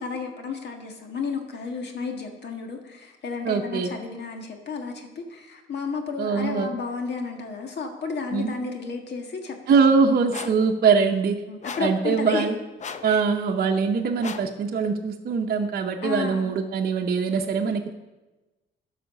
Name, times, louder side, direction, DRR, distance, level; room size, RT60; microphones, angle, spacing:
voice 1, 0.0-9.8 11.5-12.4 13.0-13.2 16.0-16.5, left 4 dB, 60° left, 4 dB, 1.6 m, -32 dB
voice 2, 3.4-3.9 6.2-6.7 8.3-8.5 9.7-11.4 11.8-12.6 13.0-18.0, right 5 dB, 50° right, 2 dB, 0.8 m, -22 dB
sound 1, 10.3-10.7 11.6-12.0 12.8-13.2 14.2-14.6, left 6 dB, 35° left, 0.6 m, -37 dB
12.0 x 5.1 x 6.5 m, 1.1 s
cardioid pair, 90°, 20 cm